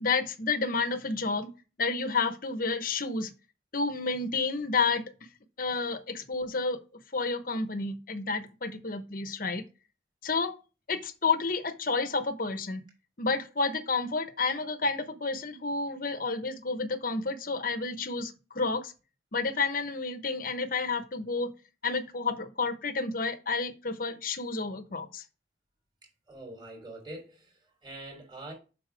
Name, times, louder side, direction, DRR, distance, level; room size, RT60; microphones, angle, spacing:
voice 1, 0.0-1.5 1.8-3.3 3.7-5.0 5.6-6.8 7.1-9.6 10.2-10.5 10.9-12.8 13.2-18.9 19.3-21.5 21.8-25.2, left 4 dB, 45° left, 1.0 m, -30 dB
voice 2, 26.3-28.5, right 1 dB, 25° right, 3.2 m, -44 dB
7.5 x 5.7 x 3.4 m
head